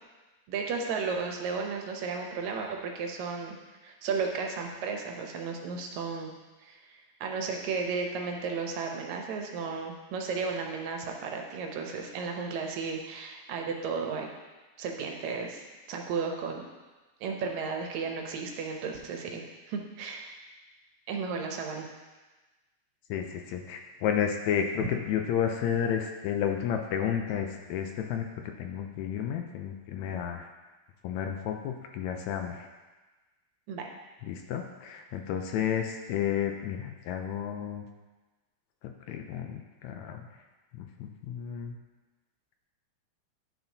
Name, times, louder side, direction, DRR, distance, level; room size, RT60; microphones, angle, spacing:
voice 1, 0.5-3.6 3.8-6.3 6.6-6.9 7.2-14.3 14.8-15.6 15.9-16.6 17.2-19.4 19.7-20.3 21.1-21.9 33.7-33.9, right 5 dB, 80° right, 2 dB, 2.1 m, -34 dB
voice 2, 23.1-28.3 28.6-30.5 31.0-32.7 34.3-37.9 39.1-40.3 40.7-41.8, left 8 dB, 80° left, 4 dB, 1.8 m, -31 dB
10.5 x 6.1 x 2.7 m, 1.2 s
omnidirectional pair, 3.4 m